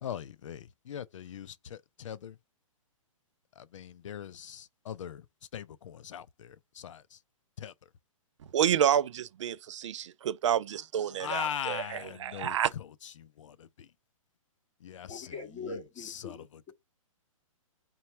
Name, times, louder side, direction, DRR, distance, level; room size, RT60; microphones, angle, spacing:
voice 1, 0.0-2.4 3.5-5.3 5.5-7.2 7.6-7.9 11.2-13.9 14.8-16.7, left 9 dB, 60° left, 0.5 m, -41 dB
voice 2, 8.5-12.7, right 9 dB, 60° right, 0.4 m, -29 dB
voice 3, 15.1-16.7, left 4 dB, 15° left, 1.7 m, -42 dB
4.0 x 2.3 x 4.3 m
hypercardioid pair, 165°, 18 cm